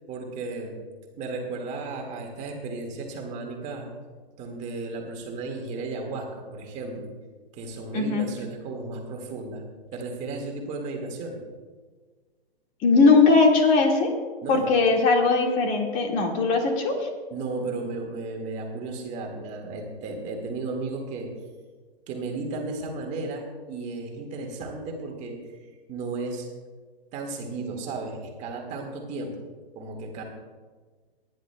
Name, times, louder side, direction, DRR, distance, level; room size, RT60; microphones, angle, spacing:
voice 1, 0.1-0.8 1.2-3.9 4.4-7.1 7.5-9.6 9.9-11.4 14.4-14.7 17.3-21.3 22.1-25.4 25.9-26.5 27.1-29.5 29.8-30.2, right 3 dB, 25° right, 1 dB, 1.9 m, -34 dB
voice 2, 7.9-8.3 12.8-14.1 14.5-17.1, left 4 dB, 25° left, 2 dB, 1.9 m, -20 dB
26.5 x 10.5 x 2.3 m, 1.4 s
hypercardioid pair, 145°, 31 cm